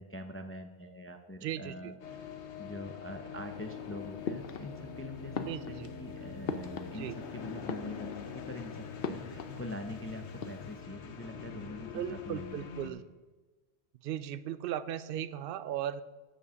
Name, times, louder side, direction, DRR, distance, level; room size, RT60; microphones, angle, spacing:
voice 1, 0.0-2.2 2.6-12.6 12.8-13.0, left 1 dB, 15° left, 6 dB, 0.4 m, -44 dB
voice 2, 1.4-1.9 5.5-5.9 7.0-7.2 11.9-13.0 14.0-16.0, right 11 dB, 65° right, 14 dB, 0.7 m, -37 dB
sound 1, 2.0-12.9, left 6 dB, 80° left, 1.1 m, -44 dB
sound 2, 4.2-5.0 5.3-7.3 7.6-8.4 9.0-10.0 10.3-10.8, left 5 dB, 60° left, 0.9 m, -40 dB
8.5 x 7.0 x 6.2 m, 1.2 s
omnidirectional pair, 1.1 m